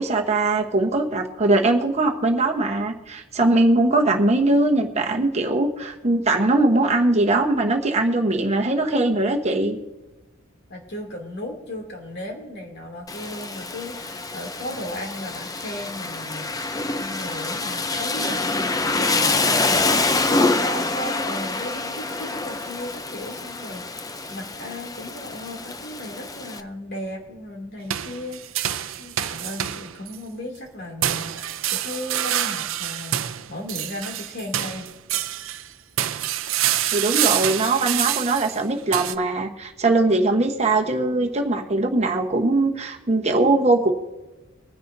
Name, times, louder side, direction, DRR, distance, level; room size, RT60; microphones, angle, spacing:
voice 1, 0.0-9.8 36.9-43.9, right 2 dB, 30° right, 2 dB, 1.1 m, -21 dB
voice 2, 10.7-34.9, left 1 dB, 55° left, 1 dB, 2.7 m, -36 dB
Rain, 13.1-26.6, left 3 dB, 15° left, 0.5 m, -26 dB
sound 1, 27.9-30.2 31.0-35.7 36.0-39.2, right 12 dB, 70° right, 0.5 m, -26 dB
23.5 x 10.0 x 2.7 m, 1.1 s
head